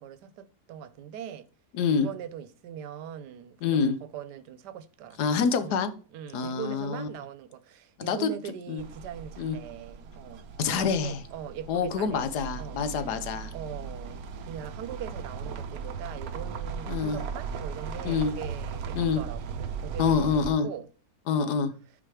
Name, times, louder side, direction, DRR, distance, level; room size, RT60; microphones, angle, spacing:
voice 1, 0.0-1.5 1.9-5.2 5.6-5.8 6.1-12.8 13.5-20.3 20.6-20.9 21.3-21.6, right 9 dB, 90° right, 1.3 m, -41 dB
voice 2, 1.7-2.1 3.6-4.0 5.2-5.9 6.3-7.1 8.0-8.3 8.7-8.8 9.4-9.6 10.6-11.2 11.7-13.5 16.9-17.2 18.0-18.3 18.9-19.2 20.0-20.7 21.3-21.7, left 6 dB, 80° left, 1.4 m, -26 dB
sound 1, 8.8-20.5, right 5 dB, 70° right, 1.1 m, -38 dB
6.1 x 4.8 x 4.7 m
omnidirectional pair, 1.7 m